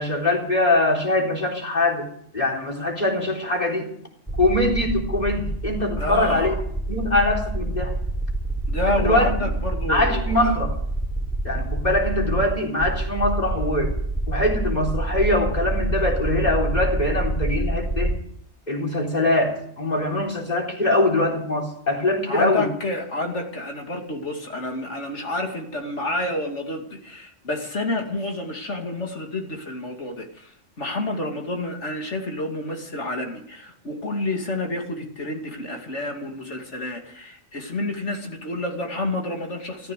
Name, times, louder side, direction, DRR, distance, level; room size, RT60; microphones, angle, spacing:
voice 1, 0.0-2.1 2.3-3.9 4.4-6.5 6.9-7.9 8.9-9.3 9.9-10.7 11.4-13.9 14.3-18.2 18.7-22.7, left 1 dB, 35° left, 2 dB, 4.0 m, -23 dB
sound 1, 4.3-18.2, right 2 dB, 5° right, 3.1 m, -27 dB
voice 2, 6.0-6.6 8.7-10.6 22.3-39.9, left 2 dB, 70° left, 2 dB, 2.9 m, -29 dB
15.0 x 14.0 x 6.7 m, 0.67 s
omnidirectional pair, 1.2 m